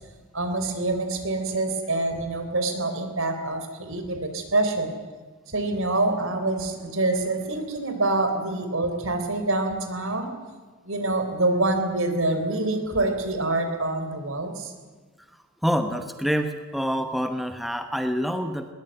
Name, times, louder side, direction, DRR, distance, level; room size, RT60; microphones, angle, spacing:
voice 1, 0.3-4.9 5.5-10.3 10.9-14.7, right 2 dB, 65° right, 7 dB, 3.9 m, -26 dB
voice 2, 15.6-18.7, equal, ahead, 6 dB, 1.0 m, -26 dB
21.5 x 19.0 x 9.1 m, 1.4 s
head